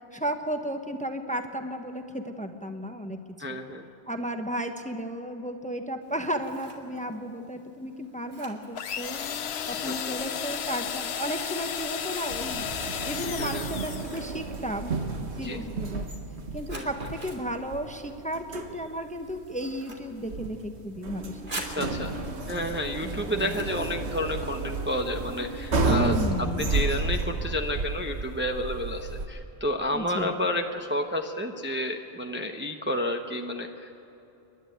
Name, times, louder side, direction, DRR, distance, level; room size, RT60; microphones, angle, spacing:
voice 1, 0.1-3.6 4.1-9.2 9.7-12.7 13.1-16.1 16.5-21.4 21.8-22.1 22.5-22.6 23.0-23.7 25.9-26.7 29.9-30.4, equal, 5° left, 6 dB, 1.0 m, -34 dB
voice 2, 3.4-3.8 9.9-10.2 13.4-13.6 15.4-15.6 16.7-16.9 21.8-22.2 22.5-26.2 26.5-34.0, left 1 dB, 10° right, 3 dB, 0.8 m, -30 dB
Scissors, 6.0-24.8, right 1 dB, 50° right, 2.7 m, -48 dB
sound 1, 8.8-14.4, left 8 dB, 70° left, 1.0 m, -33 dB
sound 2, 12.3-29.3, right 3 dB, 80° right, 1.7 m, -32 dB
29.0 x 11.0 x 9.2 m, 3.0 s
omnidirectional pair, 1.1 m